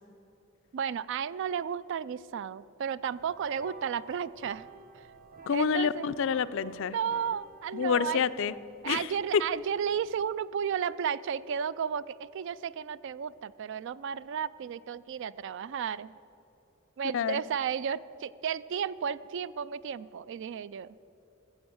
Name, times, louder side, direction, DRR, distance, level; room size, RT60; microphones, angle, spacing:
voice 1, 0.7-4.7 4.9-5.0 5.5-6.1 6.9-8.2 8.8-16.2 17.0-21.0, right 7 dB, 60° right, 18 dB, 0.3 m, -33 dB
sound 1, 3.1-10.3, right 2 dB, 45° right, 0.8 m, -52 dB
voice 2, 5.5-7.0 7.7-8.5 8.8-9.4 17.1-17.4, left 6 dB, 65° left, 14 dB, 0.4 m, -28 dB
14.5 x 7.1 x 7.8 m, 2.9 s
head